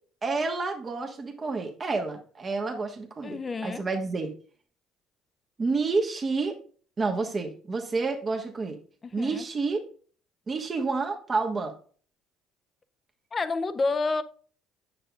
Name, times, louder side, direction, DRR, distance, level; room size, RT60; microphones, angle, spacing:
voice 1, 0.2-4.3 5.6-6.6 7.0-8.8 9.1-9.8 10.5-11.7, right 3 dB, 30° right, 1.3 m, -29 dB
voice 2, 3.2-3.8 9.2-9.5 13.3-14.2, left 3 dB, 30° left, 0.5 m, -29 dB
8.6 x 6.7 x 2.4 m
cardioid pair, 95°, 0 cm